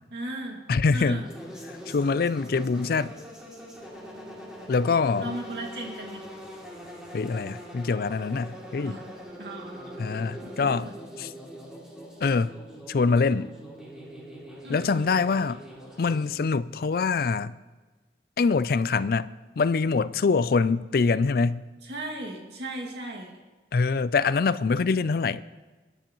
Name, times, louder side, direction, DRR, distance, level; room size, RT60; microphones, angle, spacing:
voice 1, 0.1-0.6 0.9-1.3 5.2-6.3 8.7-9.0 9.4-10.1 10.4-10.9 14.6-15.0 21.8-23.3, right 1 dB, 70° right, 2.2 m, -36 dB
voice 2, 0.7-1.2 1.9-3.1 4.7-5.4 7.1-8.9 10.0-10.9 11.2-11.3 12.2-12.5 12.9-13.5 14.7-15.6 16.0-17.5 18.4-21.6 23.7-25.4, left 4 dB, 55° left, 0.4 m, -24 dB
sound 1, 1.1-16.3, equal, 5° right, 2.8 m, -43 dB
21.5 x 10.0 x 3.1 m
head